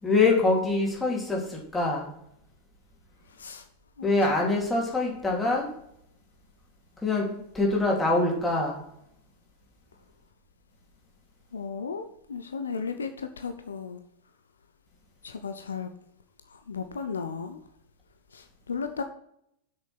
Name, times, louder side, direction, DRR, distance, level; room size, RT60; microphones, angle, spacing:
voice 1, 0.0-2.1 4.0-5.7 7.0-8.8, left 3 dB, 10° left, -2 dB, 3.2 m, -24 dB
voice 2, 11.5-14.0 15.2-15.9 16.5-17.6 18.3-19.0, left 5 dB, 70° left, 7 dB, 0.8 m, -35 dB
7.9 x 6.6 x 6.0 m, 0.74 s
figure-of-eight pair, 90°, 0 cm